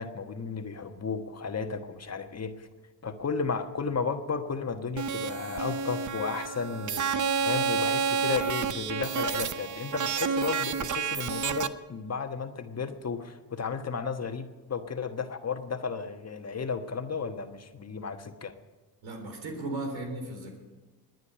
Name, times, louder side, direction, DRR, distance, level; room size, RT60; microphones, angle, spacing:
voice 1, 0.0-2.7 3.0-18.5, left 5 dB, 35° left, 7 dB, 1.3 m, -34 dB
sound 1, 5.0-11.7, right 6 dB, 40° right, 0.9 m, -30 dB
voice 2, 19.0-20.6, right 2 dB, 85° right, 3 dB, 4.0 m, -36 dB
21.5 x 9.4 x 5.7 m, 1.3 s
supercardioid pair, 65°, 45 cm